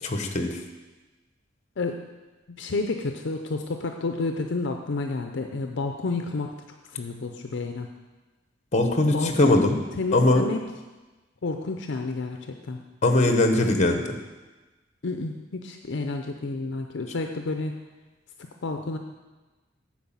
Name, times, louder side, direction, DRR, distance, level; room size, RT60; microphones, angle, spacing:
voice 1, 0.0-0.6 8.7-9.8 10.1-10.5 13.0-14.2, left 2 dB, 35° left, 5 dB, 1.0 m, -21 dB
voice 2, 2.5-6.5 7.0-7.9 9.1-9.5 9.9-10.6 11.4-12.8 15.0-17.7 18.6-19.0, left 3 dB, 65° left, 5 dB, 0.6 m, -30 dB
9.3 x 4.8 x 7.2 m, 1.2 s
head